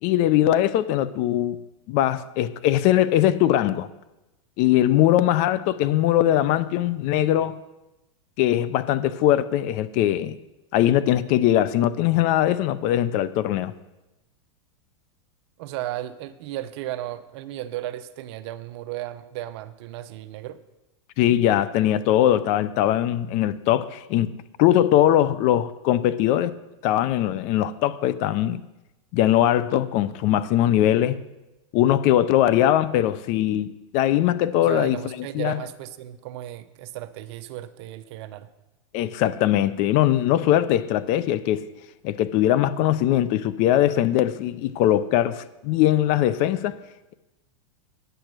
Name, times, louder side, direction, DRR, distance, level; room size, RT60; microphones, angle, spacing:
voice 1, 0.0-1.6 1.9-3.9 4.6-7.5 8.4-10.4 10.7-13.7 21.2-26.5 26.8-28.6 29.1-31.2 31.7-35.0 35.3-35.6 38.9-41.6 42.0-46.8, left 12 dB, 45° left, 0.5 m, -21 dB
voice 2, 15.6-20.6 34.6-38.5, right 14 dB, 55° right, 0.7 m, -34 dB
9.2 x 6.8 x 6.1 m
supercardioid pair, 130°, 17 cm